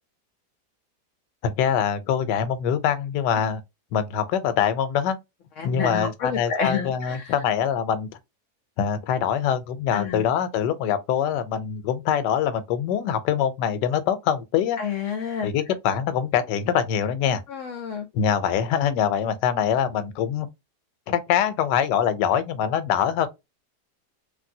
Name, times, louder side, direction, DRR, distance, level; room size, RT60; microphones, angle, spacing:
voice 1, 1.4-3.6 3.9-5.2 5.6-8.1 8.8-14.8 15.4-17.4 18.1-20.5 21.1-23.3, left 8 dB, 85° left, 1.2 m, -24 dB
voice 2, 5.6-7.3 9.9-10.3 14.8-15.5 17.5-18.1, left 6 dB, 65° left, 0.7 m, -29 dB
3.3 x 2.6 x 2.6 m
omnidirectional pair, 1.8 m